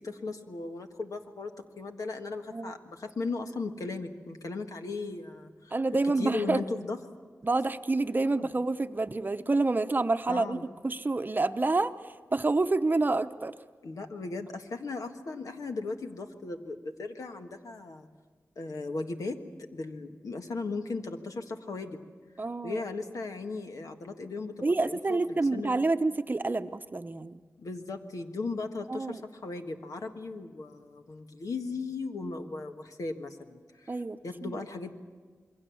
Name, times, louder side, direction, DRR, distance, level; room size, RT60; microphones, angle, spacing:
voice 1, 0.0-5.7 6.2-7.0 8.2-8.5 10.3-10.7 13.8-18.1 18.5-19.4 19.7-22.0 22.6-25.8 27.6-34.9, left 3 dB, 85° left, 5 dB, 1.5 m, -37 dB
voice 2, 5.7-6.6 7.4-10.6 10.8-13.5 22.4-22.8 24.6-27.4 28.9-29.2 33.9-34.6, right 3 dB, 35° right, 9 dB, 0.7 m, -28 dB
27.0 x 22.5 x 7.1 m, 1.5 s
wide cardioid pair, 85°, 6 cm